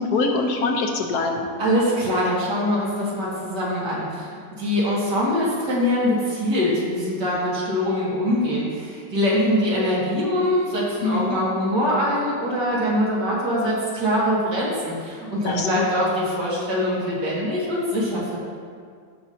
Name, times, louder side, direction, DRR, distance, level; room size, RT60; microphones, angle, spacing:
voice 1, 0.0-1.5 11.0-11.4 15.4-15.9, left 3 dB, 65° left, 2 dB, 1.4 m, -23 dB
voice 2, 1.6-18.4, equal, 75° right, -6 dB, 2.6 m, -23 dB
15.5 x 5.6 x 2.8 m, 2.1 s
omnidirectional pair, 1.9 m